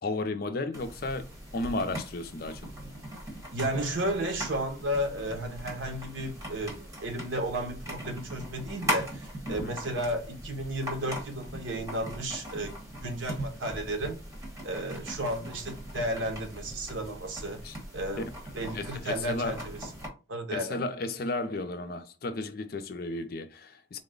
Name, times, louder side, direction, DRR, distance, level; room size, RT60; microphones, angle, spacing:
voice 1, 0.0-1.3 1.5-2.6 9.5-9.8 17.6-17.7 18.6-19.6 20.5-24.0, left 2 dB, 50° left, 0.5 m, -33 dB
sound 1, 0.7-20.1, equal, 15° right, 1.1 m, -40 dB
voice 2, 3.5-14.2 14.6-17.6 17.9-18.3 18.5-19.8 20.3-20.8, right 1 dB, 85° right, 0.9 m, -33 dB
3.9 x 2.1 x 3.7 m
head